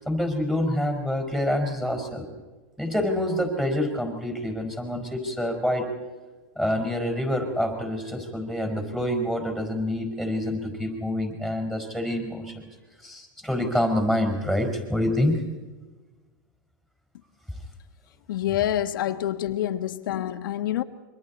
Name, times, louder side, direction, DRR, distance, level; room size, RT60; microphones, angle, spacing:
voice 1, 0.0-2.3 2.8-5.9 6.5-12.7 13.0-15.3, left 1 dB, 5° right, 4.9 m, -27 dB
voice 2, 18.3-20.8, left 12 dB, 80° left, 1.4 m, -27 dB
28.0 x 24.0 x 4.3 m
supercardioid pair, 145°, 11 cm